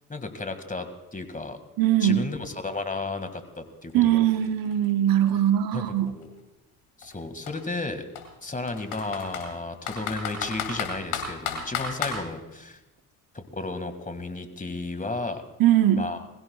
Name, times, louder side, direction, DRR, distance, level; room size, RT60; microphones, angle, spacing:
voice 1, 0.1-1.6 2.0-4.3 5.7-6.3 7.0-8.1 8.4-12.8 13.3-15.4 16.0-16.2, left 3 dB, 20° left, 8 dB, 2.0 m, -33 dB
voice 2, 1.8-2.3 3.9-6.1 15.6-16.1, right 11 dB, 65° right, 10 dB, 1.0 m, -21 dB
Computer keyboard, 3.9-4.0 4.3-6.2 7.0-7.1 7.5-7.6 8.2-9.5 9.9-12.2, left 7 dB, 80° left, 2.4 m, -32 dB
21.0 x 16.0 x 2.4 m, 1.0 s
hypercardioid pair, 50°, 37 cm